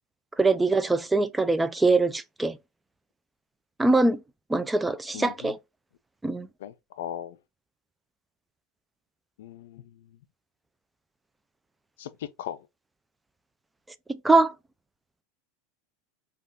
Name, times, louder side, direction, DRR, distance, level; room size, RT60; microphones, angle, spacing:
voice 1, 0.4-2.6 3.8-4.2 4.5-5.6 6.2-6.5 14.1-14.5, right 3 dB, 10° right, 0.3 m, -22 dB
voice 2, 5.1-5.5 6.6-7.4 9.4-10.2 12.0-12.6, left 11 dB, 80° left, 0.4 m, -38 dB
3.4 x 2.3 x 2.4 m
supercardioid pair, 120°, 0 cm